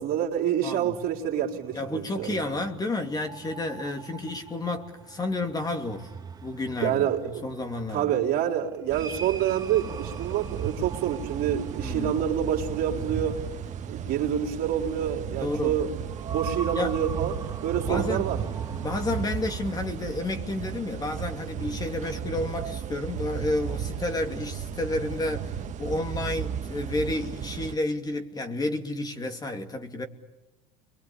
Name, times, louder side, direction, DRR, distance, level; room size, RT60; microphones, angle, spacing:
voice 1, 0.0-2.4 6.8-7.5 7.9-13.4 13.9-16.0 16.3-17.3 17.6-18.4, right 10 dB, 60° right, -1 dB, 3.8 m, -27 dB
voice 2, 0.6-0.9 1.7-6.1 6.4-8.1 11.8-12.2 15.4-15.8 16.7-17.0 17.9-18.2 18.8-30.1, left 2 dB, 20° left, 5 dB, 2.6 m, -31 dB
sound 1, 1.2-20.0, right 5 dB, 20° right, 2.2 m, -42 dB
sound 2, 8.9-27.7, right 8 dB, 40° right, 1.6 m, -35 dB
29.5 x 23.0 x 8.6 m, 1.0 s
supercardioid pair, 105°, 18 cm